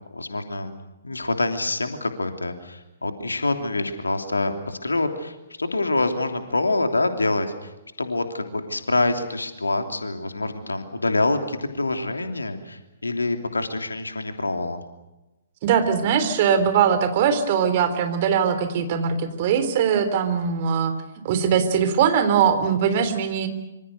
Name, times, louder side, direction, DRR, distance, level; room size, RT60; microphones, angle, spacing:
voice 1, 0.1-0.7 1.0-7.7 8.0-14.8, left 2 dB, 80° left, 6 dB, 3.0 m, -26 dB
voice 2, 15.6-20.9 21.2-23.5, right 7 dB, 40° right, 9 dB, 3.7 m, -21 dB
26.0 x 26.0 x 6.7 m, 1.0 s
figure-of-eight pair, 125°, 0 cm